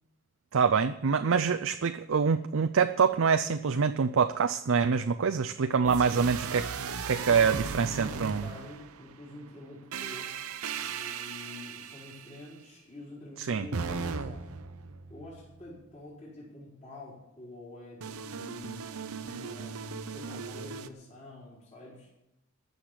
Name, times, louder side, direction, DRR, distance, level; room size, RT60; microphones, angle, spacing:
voice 1, 0.5-8.4 13.5-13.7, right 6 dB, 65° right, 8 dB, 0.5 m, -26 dB
sound 1, 5.8-9.1 9.9-12.4 13.7-15.8 18.0-20.9, right 5 dB, 85° right, 0.8 m, -37 dB
voice 2, 7.2-14.5 15.1-22.1, left 2 dB, 30° left, -6 dB, 4.5 m, -47 dB
13.5 x 6.7 x 9.8 m, 0.88 s
head